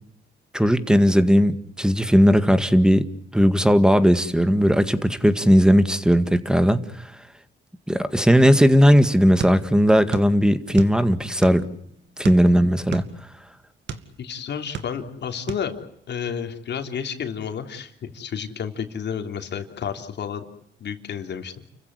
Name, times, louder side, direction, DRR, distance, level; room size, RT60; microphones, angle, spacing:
voice 1, 0.5-3.0 3.3-6.8 7.9-11.6 12.2-13.1, equal, 5° right, 12 dB, 1.9 m, -17 dB
sound 1, 9.4-10.3 10.6-11.7 12.2-14.1 14.5-15.2 15.5-15.7, right 6 dB, 70° right, 2.3 m, -33 dB
voice 2, 14.2-15.8 16.1-20.4 20.8-21.5, left 7 dB, 60° left, 6 dB, 3.3 m, -31 dB
30.0 x 15.0 x 9.7 m, 0.74 s
cardioid pair, 90°, 20 cm